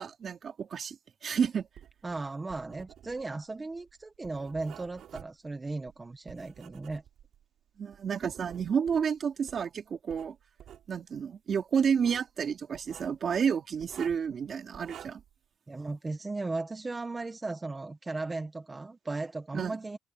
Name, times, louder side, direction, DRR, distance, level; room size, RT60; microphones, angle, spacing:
voice 1, 0.0-1.7 7.8-10.3 10.9-15.2 19.5-19.8, right 7 dB, 50° right, 3.1 m, -30 dB
Writing, 1.6-7.4 7.9-9.7 10.1-10.9 11.8-12.3 12.7-13.2 13.8-14.3 14.7-15.3, right 10 dB, 70° right, 7.2 m, -50 dB
voice 2, 2.0-7.0 15.7-20.0, right 3 dB, 20° right, 1.2 m, -36 dB
cardioid pair, 110°, 0 cm